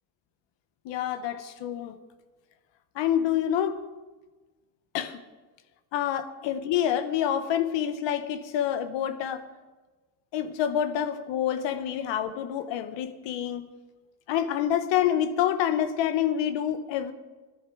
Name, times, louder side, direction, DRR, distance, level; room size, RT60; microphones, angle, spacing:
voice 1, 0.8-2.0 2.9-3.8 4.9-5.2 5.9-9.4 10.3-13.7 14.3-17.1, left 10 dB, 80° left, 12 dB, 1.1 m, -27 dB
16.5 x 11.0 x 4.7 m, 1.3 s
cardioid pair, 175°, 43 cm